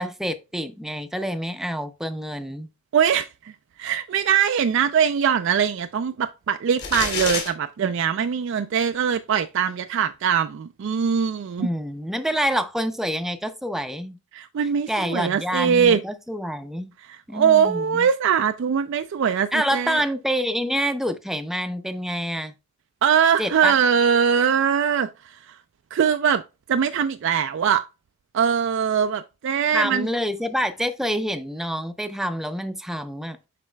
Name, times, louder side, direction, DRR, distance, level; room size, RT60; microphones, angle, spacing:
voice 1, 0.0-2.7 11.6-14.2 14.9-16.9 17.3-18.1 19.5-22.5 23.4-23.7 29.7-33.4, equal, ahead, 0.5 m, -27 dB
voice 2, 2.9-3.5 3.8-11.7 14.3-16.0 17.3-20.0 23.0-25.6 25.9-26.4 26.7-27.8 28.3-30.1, right 7 dB, 60° right, 0.3 m, -22 dB
sound 1, 6.8-7.5, left 5 dB, 50° left, 2.5 m, -26 dB
11.0 x 4.1 x 2.2 m
head